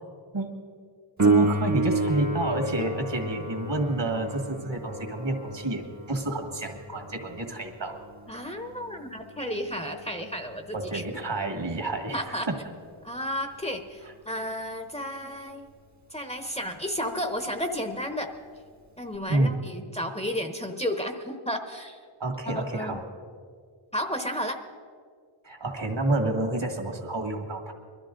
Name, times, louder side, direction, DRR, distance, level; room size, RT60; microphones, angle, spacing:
Piano, 1.2-11.6 19.1-19.2, right 2 dB, 35° right, 1.0 m, -30 dB
voice 1, 1.2-5.8 6.1-8.0 10.7-12.6 19.3-19.6 22.2-23.0 25.4-27.7, right 2 dB, 60° right, 3 dB, 1.9 m, -29 dB
voice 2, 8.3-11.0 12.1-12.5 13.0-15.7 16.1-18.3 19.0-22.0 22.5-23.0 23.9-24.6, equal, 15° left, 4 dB, 0.9 m, -32 dB
21.5 x 13.0 x 3.8 m, 2.1 s
wide cardioid pair, 70°, 47 cm